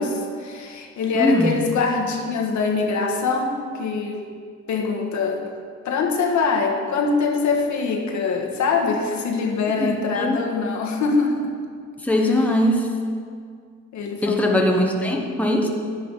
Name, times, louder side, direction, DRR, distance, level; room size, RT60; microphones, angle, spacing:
voice 1, 0.0-4.2 4.7-5.4 5.8-11.5 13.9-14.6, left 4 dB, 70° left, 1 dB, 1.5 m, -23 dB
voice 2, 1.1-1.6 9.8-10.4 12.0-12.9 14.2-15.7, left 1 dB, 5° left, 1 dB, 1.3 m, -21 dB
11.0 x 10.0 x 4.1 m, 2.1 s
cardioid pair, 90°, 30 cm